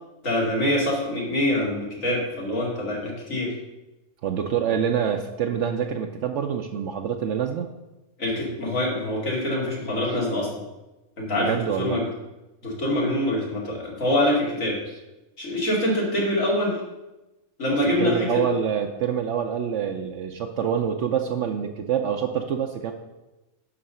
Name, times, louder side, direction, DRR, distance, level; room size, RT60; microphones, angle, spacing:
voice 1, 0.2-3.6 8.2-10.6 11.2-12.0 12.6-14.8 15.4-16.8 17.6-18.4, left 1 dB, 80° left, -4 dB, 2.9 m, -25 dB
voice 2, 4.2-7.7 10.1-10.2 11.3-12.0 18.0-22.9, right 8 dB, 70° right, 4 dB, 0.9 m, -26 dB
10.5 x 4.0 x 6.6 m, 1.0 s
omnidirectional pair, 1.4 m